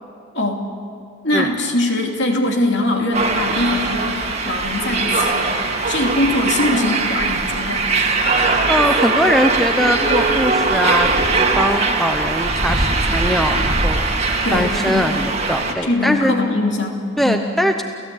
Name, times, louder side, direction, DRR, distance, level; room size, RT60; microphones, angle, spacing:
voice 1, 0.3-0.7 1.2-7.9 14.4-15.2 15.8-17.5, left 1 dB, 55° left, 2 dB, 2.9 m, -22 dB
sound 1, 3.1-15.7, right 3 dB, 30° right, 2.2 m, -20 dB
voice 2, 8.7-14.0 14.5-16.3 17.2-17.8, equal, ahead, 5 dB, 0.7 m, -21 dB
29.5 x 16.0 x 8.4 m, 2.3 s
head